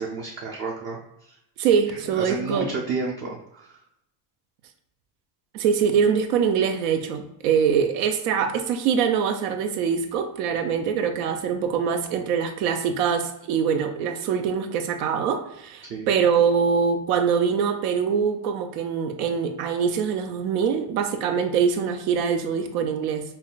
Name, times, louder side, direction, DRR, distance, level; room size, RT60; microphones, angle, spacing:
voice 1, 0.0-1.4 1.9-3.8 15.8-16.2, right 4 dB, 30° right, -2 dB, 0.4 m, -32 dB
voice 2, 1.6-2.7 5.5-23.2, right 6 dB, 90° right, 6 dB, 0.7 m, -23 dB
5.5 x 2.2 x 2.3 m, 0.81 s
cardioid pair, 125°, 47 cm